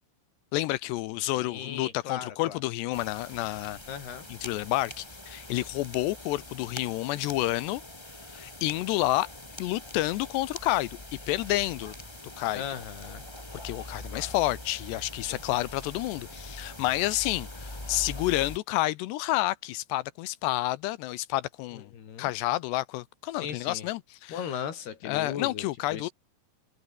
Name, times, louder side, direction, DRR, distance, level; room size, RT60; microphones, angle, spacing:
voice 1, 0.5-3.8 4.3-7.8 8.3-9.3 9.6-10.9 11.3-11.9 12.4-12.6 13.6-21.9 22.2-24.5 25.1-26.1, left 17 dB, 80° left, 2.7 m, -29 dB
voice 2, 1.3-2.6 3.9-4.3 12.6-13.2 14.1-14.3 15.3-15.4 21.9-22.3 23.3-23.9 24.3-25.7 25.9-26.1, left 8 dB, 60° left, 5.2 m, -37 dB
sound 1, 2.9-18.6, left 1 dB, 40° left, 0.3 m, -43 dB
omnidirectional pair, 5.3 m